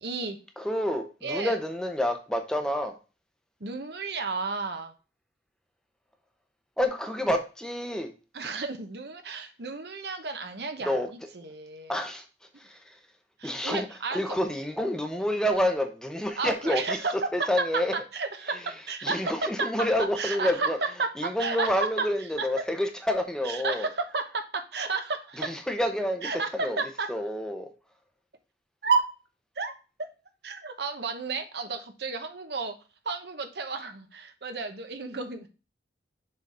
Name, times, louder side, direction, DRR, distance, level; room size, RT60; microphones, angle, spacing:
voice 1, 0.0-0.4 1.2-1.6 3.6-4.9 8.3-12.0 13.4-14.2 16.4-17.1 18.1-19.3 19.6-19.7 20.2-20.7 21.0-22.1 22.4-22.5 23.4-25.5 26.2-27.1 28.8-29.0 29.6-29.7 30.4-32.7 33.0-35.5, right 4 dB, 65° right, 7 dB, 1.0 m, -32 dB
voice 2, 0.6-3.0 6.8-8.1 10.8-11.1 11.9-12.2 12.6-12.8 13.4-13.9 14.1-17.0 17.3-17.9 19.0-20.8 21.2-23.9 25.4-26.8 27.1-27.7, left 1 dB, 5° left, 5 dB, 0.8 m, -28 dB
6.7 x 4.0 x 4.2 m, 0.32 s
head